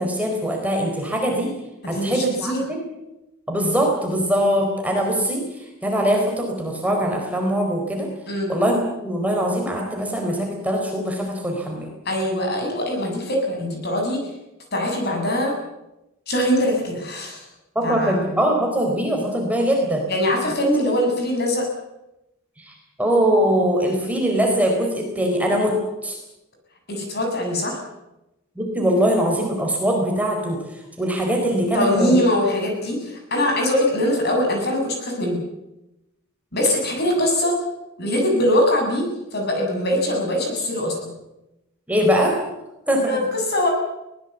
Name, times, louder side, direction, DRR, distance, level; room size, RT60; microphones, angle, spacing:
voice 1, 0.0-1.5 1.9-2.8 3.5-5.4 5.8-8.1 8.5-11.9 17.7-20.0 22.6-22.7 23.0-25.7 26.0-26.2 28.6-30.6 31.0-32.2 41.9-42.3 42.9-43.2, equal, 5° right, 1 dB, 4.4 m, -22 dB
voice 2, 1.8-2.6 8.3-8.5 12.0-14.3 14.7-15.5 16.3-17.4 17.8-18.1 20.1-21.6 26.9-27.8 31.7-35.4 36.5-37.6 38.0-41.1 43.0-43.7, left 1 dB, 50° left, 2 dB, 7.8 m, -22 dB
23.0 x 19.0 x 8.3 m, 0.93 s
head